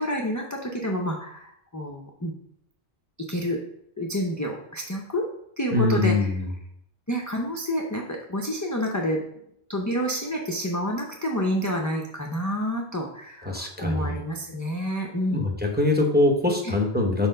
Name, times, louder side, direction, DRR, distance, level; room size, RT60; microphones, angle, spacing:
voice 1, 0.0-2.3 3.3-3.6 4.0-5.2 5.6-6.3 7.1-9.2 9.7-15.4 16.6-16.7, equal, 25° left, 0 dB, 0.4 m, -28 dB
voice 2, 5.7-6.5 13.4-14.2 15.3-17.3, left 2 dB, 10° right, 1 dB, 0.8 m, -23 dB
4.3 x 4.2 x 5.3 m, 0.74 s
omnidirectional pair, 1.1 m